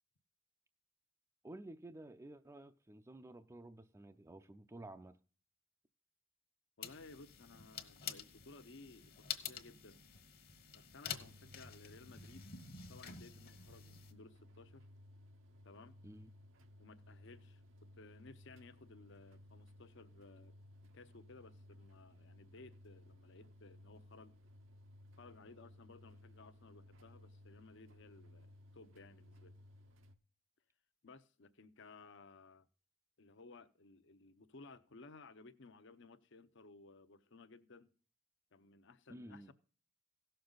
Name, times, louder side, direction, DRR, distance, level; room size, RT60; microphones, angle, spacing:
voice 1, 1.4-5.2 16.0-16.3 39.1-39.5, right 1 dB, 15° right, 0.4 m, -52 dB
voice 2, 6.8-10.0 10.7-12.4 12.9-14.8 15.6-16.0 16.8-20.5 20.8-24.3 25.2-29.5 31.0-32.7 33.2-37.9 38.5-39.5, left 3 dB, 65° left, 0.8 m, -58 dB
sound 1, 6.8-14.1, left 8 dB, 50° left, 1.2 m, -49 dB
sound 2, 11.0-30.1, left 1 dB, 85° right, 1.0 m, -60 dB
17.0 x 6.7 x 3.9 m
head